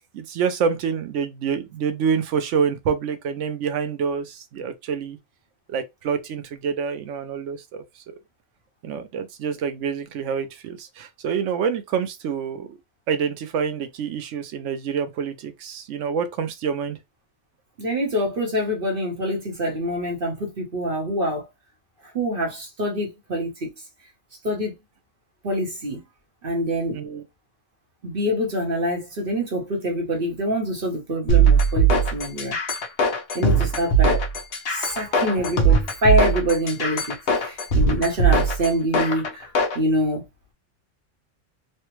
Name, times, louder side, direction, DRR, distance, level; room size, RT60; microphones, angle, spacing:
voice 1, 0.1-5.2 5.7-7.8 8.8-12.8 13.1-17.0 26.9-27.2 34.8-35.2 35.7-35.8, right 6 dB, 75° right, 0.9 m, -27 dB
voice 2, 17.8-21.5 22.0-23.7 24.4-24.7 25.4-26.0 26.4-27.0 28.0-32.6 33.3-34.3 34.7-39.5 39.7-40.2, equal, 50° right, 1.0 m, -25 dB
sound 1, 31.3-39.8, right 4 dB, 55° left, 1.0 m, -20 dB
3.3 x 2.2 x 3.0 m
omnidirectional pair, 1.3 m